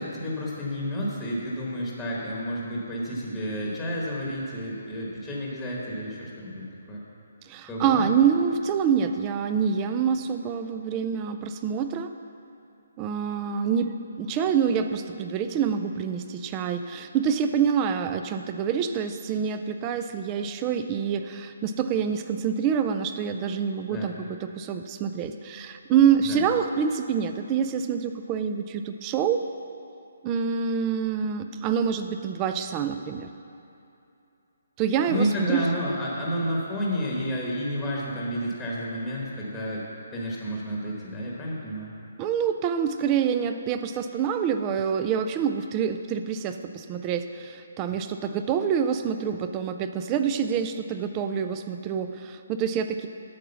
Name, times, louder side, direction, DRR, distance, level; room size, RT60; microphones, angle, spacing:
voice 1, 0.0-7.0 7.7-8.1 23.9-24.1 26.3-26.4 35.1-39.8 40.1-41.9, equal, 5° left, -5 dB, 1.1 m, -30 dB
voice 2, 7.4-12.1 13.0-29.5 30.2-33.3 34.8-35.7 42.2-53.1, right 7 dB, 15° right, 8 dB, 0.3 m, -26 dB
9.3 x 6.2 x 6.9 m, 2.7 s
hypercardioid pair, 175°, 0 cm